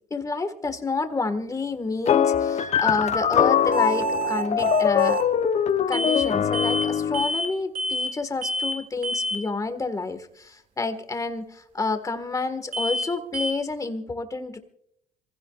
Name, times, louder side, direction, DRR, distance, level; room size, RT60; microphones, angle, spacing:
voice 1, 0.1-5.2 5.9-14.6, left 3 dB, 20° left, 9 dB, 1.6 m, -29 dB
sound 1, 2.1-7.3, left 8 dB, 40° left, 0.9 m, -22 dB
sound 2, 3.7-5.3 5.9-6.3 6.5-6.9 7.1-7.5 7.7-8.1 8.4-8.8 9.0-9.4 12.7-13.1 13.3-13.5, right 1 dB, 55° right, 2.4 m, -28 dB
27.0 x 16.0 x 2.4 m, 0.73 s
cardioid pair, 110°, 17 cm